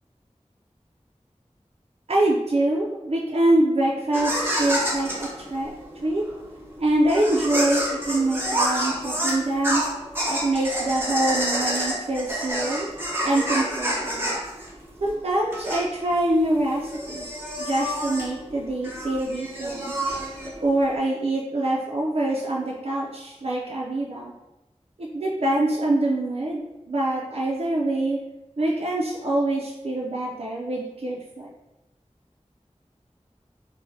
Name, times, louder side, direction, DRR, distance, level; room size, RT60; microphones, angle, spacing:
voice 1, 2.1-5.7 6.0-6.2 6.8-9.8 10.3-12.9 13.2-14.3 15.0-19.9 20.6-24.3 25.0-26.6 26.9-28.2 28.6-31.5, right 1 dB, 55° right, -4 dB, 0.4 m, -25 dB
jiggling toy, 4.1-20.9, equal, 15° right, 0.7 m, -29 dB
2.6 x 2.1 x 3.1 m, 0.97 s
wide cardioid pair, 40°, 12 cm